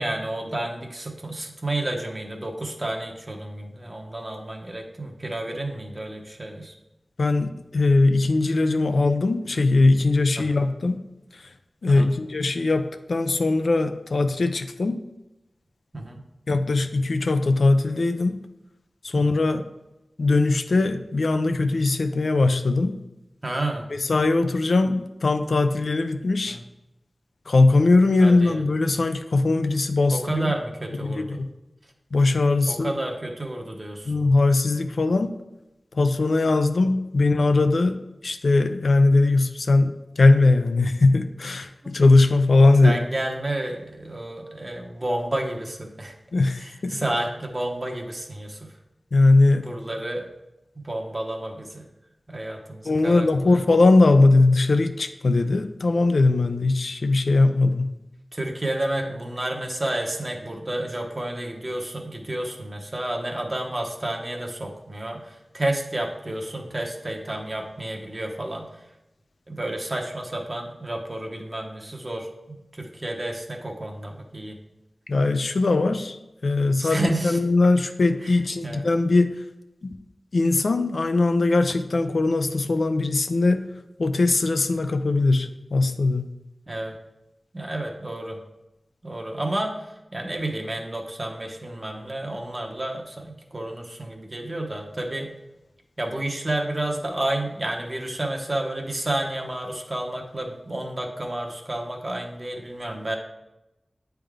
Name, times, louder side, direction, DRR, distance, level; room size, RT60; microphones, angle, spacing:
voice 1, 0.0-6.7 10.4-10.6 11.9-12.1 15.9-16.2 19.1-19.4 23.4-23.9 26.5-26.6 28.2-28.6 30.1-31.4 32.7-34.1 37.2-37.5 42.8-46.1 46.6-48.6 49.6-50.2 50.8-51.8 52.3-53.6 58.3-68.7 69.5-74.5 76.8-77.4 78.2-78.4 78.6-78.8 86.7-86.9 87.5-88.4 89.0-95.3 96.0-103.2, right 1 dB, 35° right, 1 dB, 0.9 m, -30 dB
voice 2, 7.2-11.0 11.8-15.0 16.5-18.4 19.0-19.6 20.2-23.0 23.9-26.6 27.5-30.5 31.0-31.5 32.1-32.9 34.1-35.3 35.9-38.0 38.2-43.0 46.3-47.0 49.1-49.7 52.8-57.9 75.1-79.4 79.8-79.9 80.3-83.7 84.0-86.3, left 3 dB, 80° left, 8 dB, 0.4 m, -20 dB
8.7 x 3.5 x 3.6 m, 0.93 s
wide cardioid pair, 75°, 0 cm